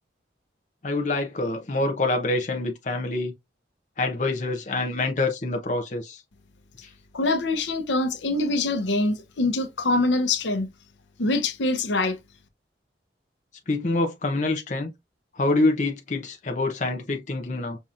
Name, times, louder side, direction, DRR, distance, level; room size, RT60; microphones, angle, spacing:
voice 1, 0.8-3.3 4.0-6.2 6.8-6.9 13.7-14.9 15.3-17.8, left 2 dB, 40° left, 0.7 m, -26 dB
voice 2, 7.1-10.7 11.2-12.2, left 2 dB, 80° left, 0.8 m, -24 dB
5.4 x 3.0 x 2.5 m
head